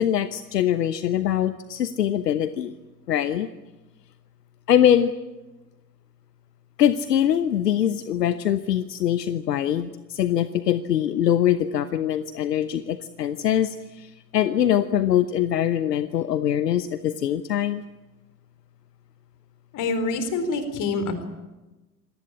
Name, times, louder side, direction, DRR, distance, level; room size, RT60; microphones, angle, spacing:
voice 1, 0.0-2.7 3.1-3.5 4.7-5.1 6.8-17.8, left 10 dB, 75° left, 13 dB, 1.1 m, -23 dB
voice 2, 19.7-21.2, left 3 dB, 35° left, 9 dB, 4.3 m, -26 dB
26.5 x 18.5 x 8.6 m, 1.1 s
figure-of-eight pair, 85°, 50 cm